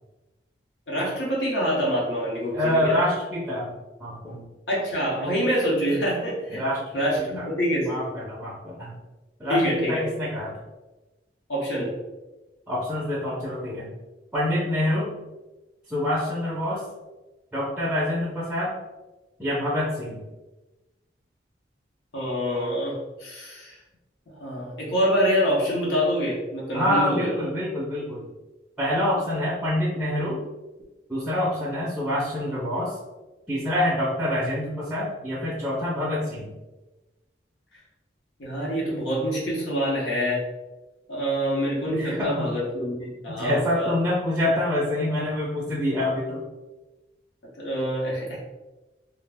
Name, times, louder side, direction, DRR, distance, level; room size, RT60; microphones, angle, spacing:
voice 1, 0.9-3.0 4.7-6.6 6.9-8.0 9.5-10.1 11.5-11.9 22.1-23.8 24.4-27.3 38.4-40.4 41.1-43.9 47.6-48.4, equal, 70° left, -5 dB, 0.8 m, -26 dB
voice 2, 2.5-3.7 4.0-4.4 6.5-6.9 7.2-7.5 7.9-9.0 9.4-10.6 12.7-13.9 14.3-15.1 15.9-16.8 17.5-18.8 19.4-20.2 26.7-28.3 28.8-30.4 31.1-33.0 33.5-36.5 41.9-42.5 43.3-46.5, left 1 dB, 5° right, -7 dB, 0.4 m, -26 dB
2.4 x 2.1 x 3.3 m, 1.1 s
head